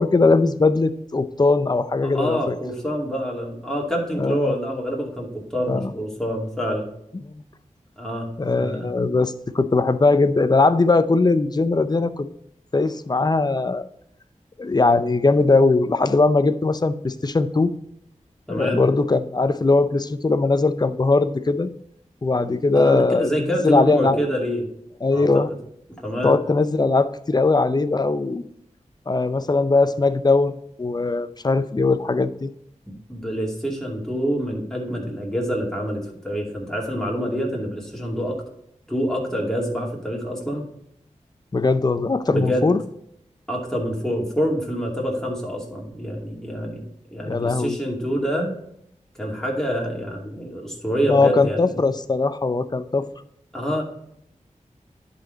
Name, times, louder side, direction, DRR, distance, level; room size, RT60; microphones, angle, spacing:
voice 1, 0.0-2.5 4.1-4.5 5.7-5.9 7.2-7.4 8.4-12.3 12.7-13.8 14.6-17.7 18.5-21.7 22.2-24.2 25.0-25.5 26.2-28.4 29.1-30.5 30.8-32.5 41.5-42.8 47.2-47.8 51.1-53.1, left 3 dB, 30° left, 12 dB, 0.5 m, -20 dB
voice 2, 2.0-6.9 8.0-8.9 18.5-18.8 22.7-24.6 25.1-25.3 26.0-26.3 33.1-38.4 38.9-40.7 42.3-42.7 43.5-48.5 49.2-51.8 53.5-53.8, equal, 5° left, -3 dB, 2.5 m, -26 dB
11.0 x 4.2 x 3.9 m, 0.74 s
wide cardioid pair, 60°, 13 cm